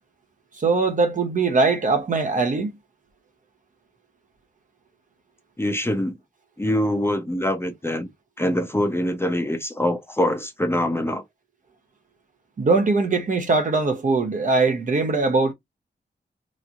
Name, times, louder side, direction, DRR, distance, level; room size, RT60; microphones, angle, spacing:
voice 1, 0.6-2.7 12.6-15.5, right 3 dB, 50° right, 0.7 m, -21 dB
voice 2, 5.6-6.2 6.6-8.1 8.4-11.2, left 1 dB, 15° left, 0.6 m, -24 dB
3.0 x 2.6 x 2.4 m
wide cardioid pair, 160°, 18 cm